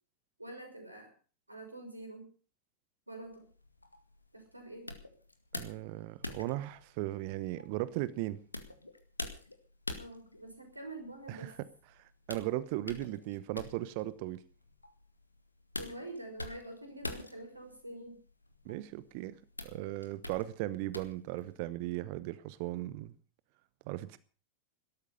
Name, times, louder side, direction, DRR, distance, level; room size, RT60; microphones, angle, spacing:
voice 1, 0.4-1.1 1.5-2.3 3.1-3.5 4.3-4.9 10.0-11.6 15.8-18.2, right 1 dB, 85° right, 5 dB, 5.7 m, -46 dB
sound 1, 3.2-21.7, left 2 dB, 85° left, 1.9 m, -47 dB
voice 2, 5.5-8.4 11.3-11.5 11.9-14.4 18.6-23.1 23.9-24.2, right 16 dB, 45° right, 17 dB, 1.0 m, -37 dB
18.0 x 13.5 x 5.4 m, 0.38 s
figure-of-eight pair, 90°, 0 cm